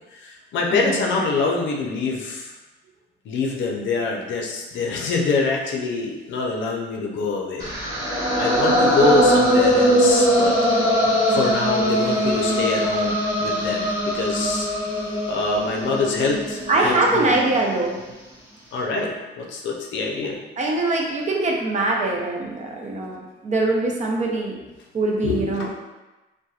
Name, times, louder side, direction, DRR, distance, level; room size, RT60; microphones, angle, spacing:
voice 1, 0.1-2.5 3.3-7.7 8.3-10.5 11.3-13.9 14.1-14.7 15.3-17.4 18.7-20.4 25.2-25.7, left 3 dB, 70° left, -1 dB, 0.5 m, -25 dB
voice 2, 0.7-1.2 8.7-9.3 16.7-18.0 20.6-24.6 24.9-25.7, right 2 dB, 35° right, -1 dB, 0.5 m, -23 dB
sound 1, 7.6-17.7, equal, 20° right, 1.2 m, -21 dB
2.8 x 2.2 x 2.3 m, 1.1 s
cardioid pair, 90°, 20 cm